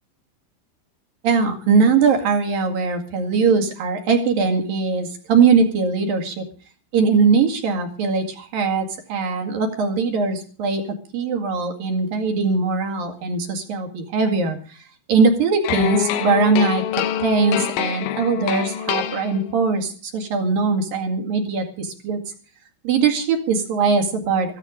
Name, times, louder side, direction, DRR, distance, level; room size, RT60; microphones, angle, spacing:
voice 1, 1.2-6.5 6.9-10.8 11.1-22.2 22.8-24.6, right 5 dB, 55° right, 4 dB, 3.2 m, -21 dB
sound 1, 15.6-19.7, left 10 dB, 75° left, 3.4 m, -25 dB
15.0 x 15.0 x 5.2 m, 0.40 s
omnidirectional pair, 5.8 m